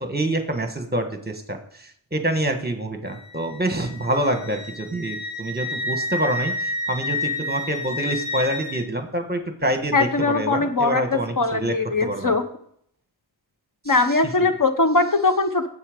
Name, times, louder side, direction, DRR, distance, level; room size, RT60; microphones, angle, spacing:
voice 1, 0.0-9.9 10.3-11.7 12.0-12.3 13.8-14.0, right 1 dB, 20° right, 6 dB, 1.3 m, -26 dB
Wind instrument woodwind instrument, 3.0-8.8, left 2 dB, 80° left, 4.6 m, -30 dB
voice 2, 9.9-12.5 13.8-15.7, left 3 dB, 45° left, 8 dB, 0.9 m, -21 dB
9.8 x 7.8 x 5.1 m, 0.66 s
wide cardioid pair, 100°, 45 cm